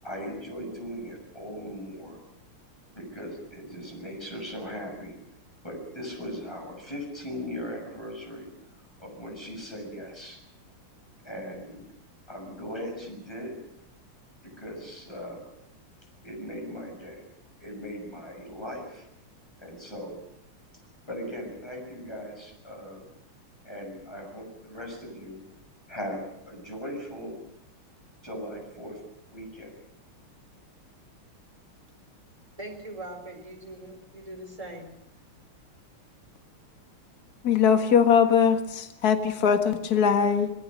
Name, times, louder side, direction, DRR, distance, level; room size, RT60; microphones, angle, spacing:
voice 1, 0.0-2.2 2.9-5.2 5.6-8.5 9.0-10.4 11.2-11.8 12.3-13.5 14.4-15.4 16.2-17.2 17.6-19.1 19.6-20.2 21.1-23.0 23.6-25.4 25.9-27.3 28.2-29.0 29.3-29.7, equal, 10° left, 2 dB, 6.8 m, -38 dB
voice 2, 32.6-34.9, right 1 dB, 15° right, 2 dB, 4.5 m, -41 dB
voice 3, 37.4-40.5, left 7 dB, 45° left, 6 dB, 2.1 m, -21 dB
26.5 x 20.0 x 6.5 m, 0.78 s
omnidirectional pair, 2.4 m